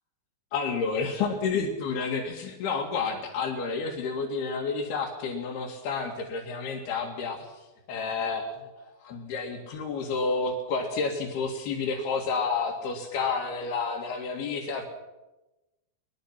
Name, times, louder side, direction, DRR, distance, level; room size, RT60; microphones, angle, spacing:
voice 1, 0.5-7.5 7.9-8.5 9.0-14.8, left 4 dB, 80° left, 0 dB, 4.0 m, -30 dB
22.5 x 21.5 x 5.8 m, 1.0 s
omnidirectional pair, 4.5 m